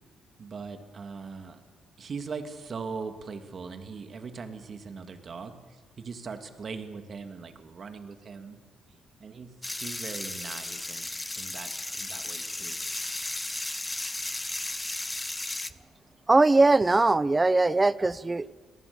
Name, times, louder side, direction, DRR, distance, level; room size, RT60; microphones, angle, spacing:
voice 1, 0.4-1.6 2.0-8.6 9.2-12.8, right 5 dB, 45° right, 6 dB, 2.6 m, -40 dB
sound 1, 9.6-15.7, left 2 dB, 15° left, 0.9 m, -34 dB
voice 2, 16.3-18.5, right 3 dB, 20° right, 18 dB, 0.6 m, -21 dB
25.0 x 19.0 x 7.2 m, 1.4 s
cardioid pair, 90°, 0 cm